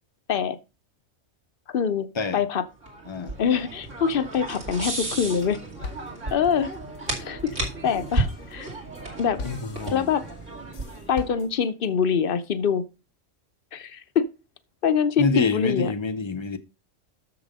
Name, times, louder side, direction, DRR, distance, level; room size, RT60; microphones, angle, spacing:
voice 1, 1.7-2.1 2.3-2.7 3.4-5.6 6.3-6.7 7.2-8.7 9.2-9.4 9.9-10.2 11.1-12.8 13.7-14.3 14.8-15.9, left 7 dB, 55° left, 0.8 m, -24 dB
sound 1, 2.8-11.4, right 2 dB, 70° right, 3.0 m, -33 dB
sound 2, 4.9-5.5 5.8-11.9, left 3 dB, 70° left, 1.3 m, -41 dB
voice 2, 9.4-10.1 15.2-16.6, left 4 dB, 30° left, 0.6 m, -26 dB
6.9 x 6.9 x 5.3 m
omnidirectional pair, 1.3 m